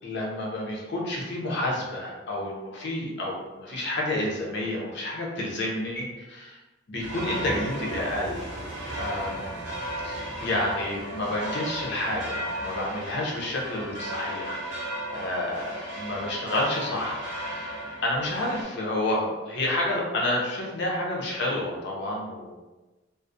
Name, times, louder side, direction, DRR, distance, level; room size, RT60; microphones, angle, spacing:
voice 1, 0.0-6.6 6.9-8.5 9.0-9.7 10.0-17.2 17.5-17.7 18.0-22.5, left 1 dB, 65° left, -3 dB, 0.6 m, -30 dB
sound 1, 7.0-18.6, right 1 dB, 85° right, 0.8 m, -35 dB
2.3 x 2.1 x 2.6 m, 1.1 s
head